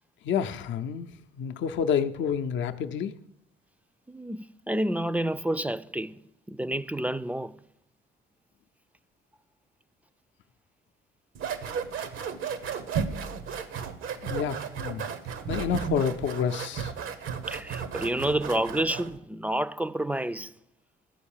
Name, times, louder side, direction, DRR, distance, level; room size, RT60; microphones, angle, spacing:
voice 1, 0.2-3.1 14.2-15.0 15.5-16.9, left 7 dB, 70° left, 0.6 m, -29 dB
voice 2, 4.1-6.2 6.5-7.5 17.5-20.5, right 1 dB, 5° right, 0.3 m, -29 dB
sound 1, 11.3-19.2, right 6 dB, 85° right, 0.9 m, -34 dB
11.5 x 4.6 x 7.2 m
cardioid pair, 90°, 20 cm